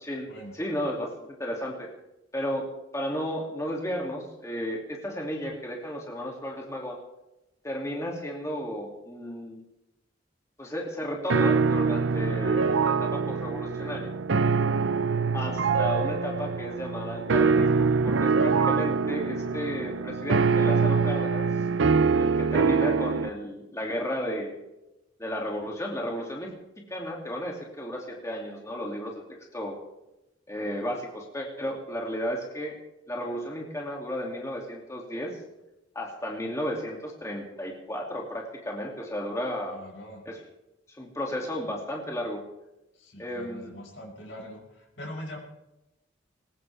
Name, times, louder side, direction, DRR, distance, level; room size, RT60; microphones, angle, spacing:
voice 1, 0.5-1.1 1.4-1.9 2.3-2.7 2.9-7.0 7.6-9.6 10.6-14.1 15.3-21.5 22.2-24.6 25.2-26.5 26.9-29.8 30.5-32.8 33.1-35.4 35.9-39.8 40.3-40.4 41.0-42.4 43.2-43.7, equal, 15° left, -1 dB, 2.6 m, -33 dB
sound 1, 11.3-23.3, right 5 dB, 70° right, 0.6 m, -24 dB
voice 2, 39.7-40.2 42.9-45.4, equal, 65° left, -1 dB, 5.7 m, -42 dB
21.0 x 19.0 x 3.5 m, 0.93 s
head